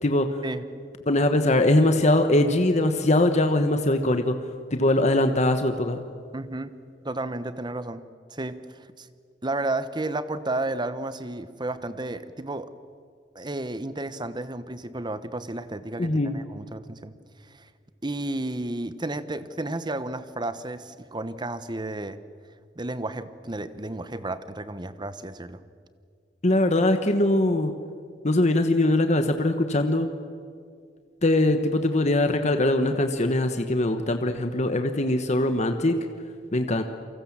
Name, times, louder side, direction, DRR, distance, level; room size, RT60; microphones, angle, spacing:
voice 1, 0.0-0.4 1.1-4.3 4.7-6.0 16.0-16.3 26.4-27.7 28.2-30.1 31.2-36.0 36.5-36.8, left 1 dB, 40° left, 7 dB, 1.3 m, -22 dB
voice 2, 6.3-6.7 7.0-8.0 8.3-9.1 9.4-12.7 13.3-17.1 17.5-17.7 18.0-22.2 22.8-25.6, right 2 dB, 25° right, 13 dB, 1.1 m, -32 dB
29.0 x 24.0 x 7.4 m, 2.1 s
head